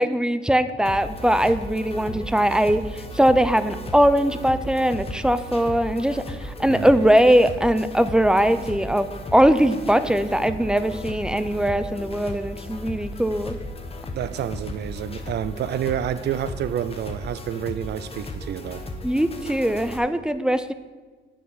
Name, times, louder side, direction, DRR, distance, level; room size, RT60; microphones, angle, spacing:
voice 1, 0.0-13.6 19.0-20.7, equal, 5° right, 0.6 m, -21 dB
sound 1, 0.8-20.0, left 1 dB, 30° left, 1.2 m, -36 dB
voice 2, 6.6-7.0 14.1-18.8, right 10 dB, 60° right, 0.5 m, -29 dB
8.6 x 6.1 x 7.2 m
cardioid pair, 90°, 20 cm